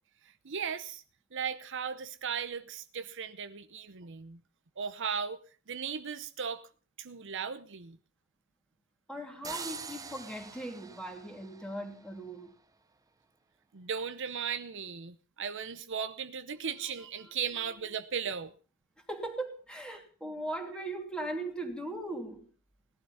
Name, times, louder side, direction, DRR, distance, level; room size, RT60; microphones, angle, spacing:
voice 1, 0.4-1.0 1.3-4.4 4.8-5.4 5.7-6.6 7.0-8.0 13.7-18.5, right 7 dB, 60° right, 0.8 m, -36 dB
voice 2, 9.1-12.5 16.5-16.7 17.2-17.3 19.1-22.5, right 1 dB, 5° left, 3.0 m, -39 dB
sound 1, 9.4-12.3, right 5 dB, 15° right, 0.8 m, -44 dB
18.0 x 11.5 x 5.6 m
head